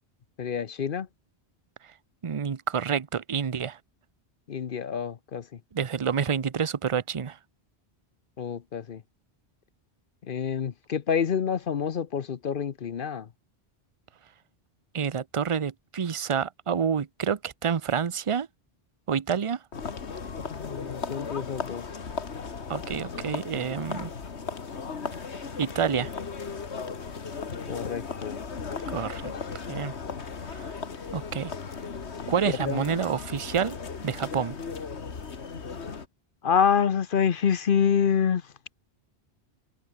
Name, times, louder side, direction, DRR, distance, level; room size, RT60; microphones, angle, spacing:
voice 1, 0.4-1.1 4.5-5.6 8.4-9.0 10.2-13.3 20.4-21.9 27.7-28.4 32.5-32.9 36.4-38.5, left 7 dB, 55° left, 0.9 m, -27 dB
voice 2, 2.2-3.8 5.7-7.4 14.9-18.5 19.1-19.6 22.7-24.1 25.6-26.1 28.9-29.3 29.7-29.9 30.5-30.7 31.1-31.5 32.3-33.8 34.0-34.5, right 7 dB, 35° right, 0.7 m, -28 dB
sound 1, 19.7-36.1, left 5 dB, 80° left, 1.9 m, -36 dB
omnidirectional pair, 1.1 m